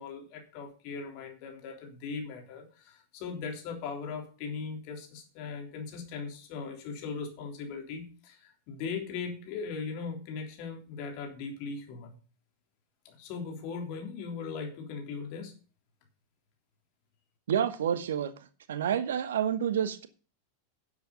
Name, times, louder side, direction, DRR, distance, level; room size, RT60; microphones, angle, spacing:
voice 1, 0.0-12.2 13.0-15.5, left 5 dB, 45° left, 3.5 m, -39 dB
voice 2, 17.5-18.3 18.7-20.1, right 9 dB, 60° right, 1.1 m, -28 dB
10.5 x 7.5 x 5.6 m
figure-of-eight pair, 90°, 0 cm